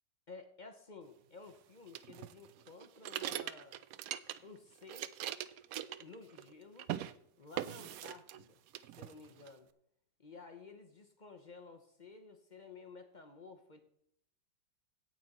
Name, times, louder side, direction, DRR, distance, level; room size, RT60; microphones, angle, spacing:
voice 1, 0.3-3.8 4.4-5.2 6.0-6.9 7.4-8.6 8.9-9.7 10.2-13.8, left 4 dB, 40° left, 6 dB, 0.7 m, -53 dB
sound 1, 1.9-4.6 4.8-6.5 6.8-7.1 7.6-8.4 8.7-9.5, right 12 dB, 75° right, 0.8 m, -41 dB
17.0 x 6.2 x 4.2 m, 0.73 s
omnidirectional pair, 2.0 m